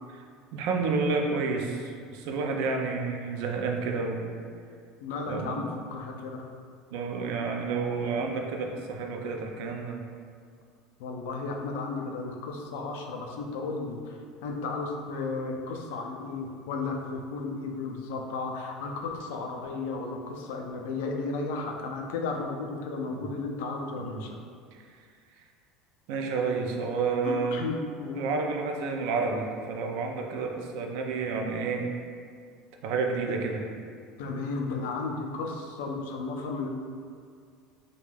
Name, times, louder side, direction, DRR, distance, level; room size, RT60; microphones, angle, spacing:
voice 1, 0.5-4.3 5.3-5.6 6.9-10.0 23.1-23.3 24.0-24.2 26.1-27.6 28.2-31.9 32.8-33.6 34.2-34.3, right 4 dB, 75° right, 2 dB, 0.3 m, -30 dB
voice 2, 5.0-6.4 8.0-8.1 11.0-24.4 27.2-28.3 34.2-36.7, left 3 dB, 85° left, 2 dB, 0.3 m, -34 dB
2.3 x 2.2 x 3.1 m, 2.1 s
supercardioid pair, 140°, 0 cm